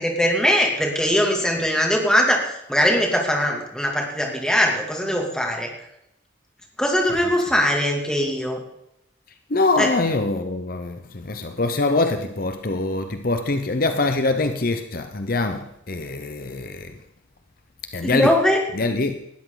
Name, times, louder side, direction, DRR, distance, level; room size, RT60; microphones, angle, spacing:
voice 1, 0.0-5.7 6.8-8.6 9.8-9.9 18.0-18.6, equal, 5° left, 2.5 m, -21 dB
voice 2, 9.5-16.9 17.9-18.3 18.8-19.2, left 2 dB, 50° left, 0.8 m, -24 dB
19.0 x 13.0 x 4.0 m
head